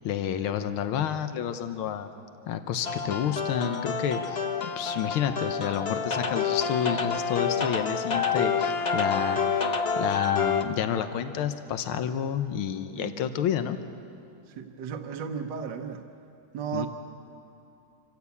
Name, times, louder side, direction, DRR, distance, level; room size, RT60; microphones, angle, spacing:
voice 1, 0.0-2.1 2.5-4.4 4.8-9.4 10.0-13.8 16.7-16.9, left 9 dB, 85° left, 9 dB, 1.8 m, -29 dB
sound 1, 2.8-10.6, left 5 dB, 40° left, 0.9 m, -28 dB
voice 2, 14.6-16.0 16.5-16.9, right 7 dB, 65° right, 4 dB, 1.6 m, -34 dB
26.0 x 15.5 x 8.4 m, 2.7 s
omnidirectional pair, 2.3 m